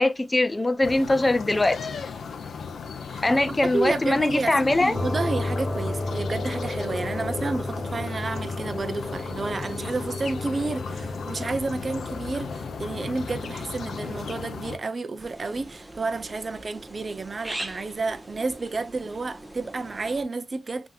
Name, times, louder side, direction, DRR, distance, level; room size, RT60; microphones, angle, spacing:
voice 1, 0.0-1.8 3.2-5.0, left 2 dB, 20° left, 0.6 m, -22 dB
sound 1, 0.8-14.8, left 5 dB, 85° left, 0.6 m, -36 dB
voice 2, 3.1-20.9, right 3 dB, 45° right, 0.6 m, -31 dB
sound 2, 4.9-14.5, left 2 dB, 40° left, 1.2 m, -33 dB
sound 3, 15.2-20.2, right 1 dB, 15° right, 1.0 m, -41 dB
5.8 x 2.8 x 2.3 m
wide cardioid pair, 95°, 0 cm